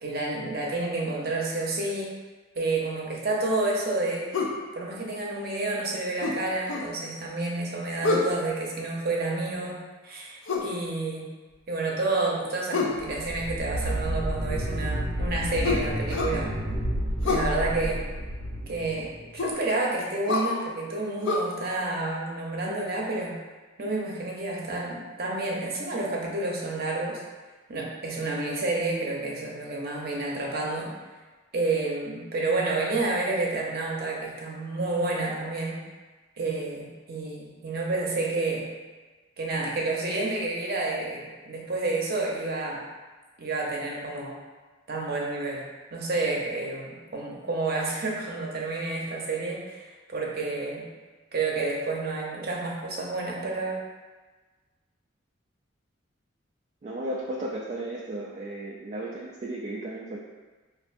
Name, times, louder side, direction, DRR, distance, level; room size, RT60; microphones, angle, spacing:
voice 1, 0.0-2.1 2.6-4.3 4.7-9.8 10.0-11.3 11.7-16.5 17.2-18.0 18.7-23.3 23.8-27.2 27.7-30.9 31.5-35.8 36.4-38.7 39.4-42.9 43.4-44.4 44.9-45.6 45.9-50.8 51.3-53.8, right 2 dB, 50° right, -3 dB, 0.7 m, -29 dB
sound 1, 4.3-4.6 6.2-6.9 8.0-8.4 10.5-10.7 12.7-13.0 15.6-16.4 17.2-17.5 19.4-19.6 20.3-20.5 21.2-21.4, left 3 dB, 70° left, 0.5 m, -27 dB
sound 2, 13.0-19.4, equal, 85° left, 1.2 m, -30 dB
voice 2, 56.8-60.2, right 1 dB, 35° right, -3 dB, 0.3 m, -34 dB
4.4 x 2.5 x 2.5 m, 1.3 s
head